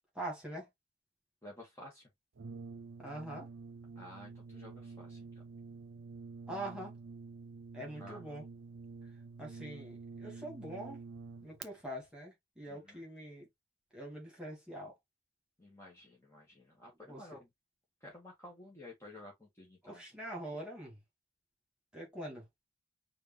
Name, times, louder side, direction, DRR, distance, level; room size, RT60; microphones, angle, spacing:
voice 1, 0.1-0.7 3.0-3.5 6.5-6.9 7.7-8.4 9.4-11.0 11.4-13.5 13.9-14.9 17.1-17.2 19.8-21.0 21.9-22.5, right 1 dB, 5° right, 2.3 m, -44 dB
voice 2, 1.4-2.1 4.0-5.2 8.0-8.4 12.7-13.0 15.6-17.5 18.0-20.0, left 1 dB, 15° left, 1.8 m, -53 dB
Brass instrument, 2.4-11.7, right 4 dB, 75° right, 0.6 m, -48 dB
5.0 x 2.9 x 3.3 m
head